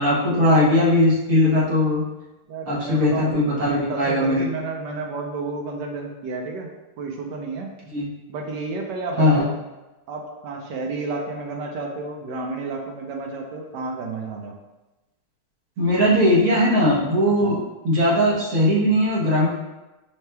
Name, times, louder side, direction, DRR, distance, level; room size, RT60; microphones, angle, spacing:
voice 1, 0.0-2.0 2.7-4.5 7.9-8.1 9.2-9.5 15.8-19.5, left 1 dB, 55° right, -5 dB, 1.4 m, -19 dB
voice 2, 2.5-6.7 7.0-7.7 8.3-9.5 10.1-14.6 17.4-17.6, right 3 dB, 75° right, 1 dB, 1.2 m, -31 dB
5.6 x 3.3 x 2.2 m, 1.1 s
omnidirectional pair, 1.9 m